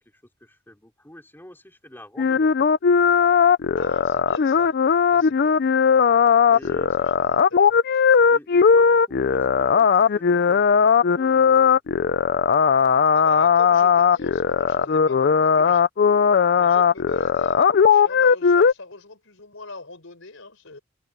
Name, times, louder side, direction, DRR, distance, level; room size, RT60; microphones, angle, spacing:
voice 1, 0.0-2.5 6.5-6.9 8.3-11.8, left 1 dB, 10° left, 4.5 m, -46 dB
sound 1, 2.2-18.7, left 6 dB, 50° left, 0.4 m, -18 dB
voice 2, 3.8-4.7 5.1-5.7 6.5-7.7 13.1-15.8 16.5-20.8, left 3 dB, 70° left, 5.4 m, -41 dB
head